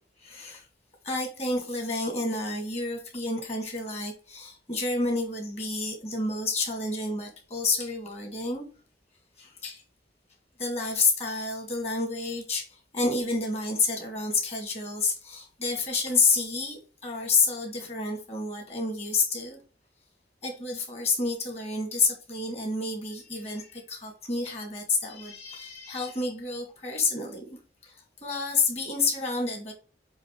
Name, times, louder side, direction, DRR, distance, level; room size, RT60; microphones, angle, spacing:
voice 1, 0.2-0.6 1.0-8.6 9.4-9.8 10.6-19.6 20.4-27.4 27.8-27.9 28.2-29.7, left 3 dB, 35° left, 2.3 m, -29 dB
7.3 x 3.3 x 4.8 m
head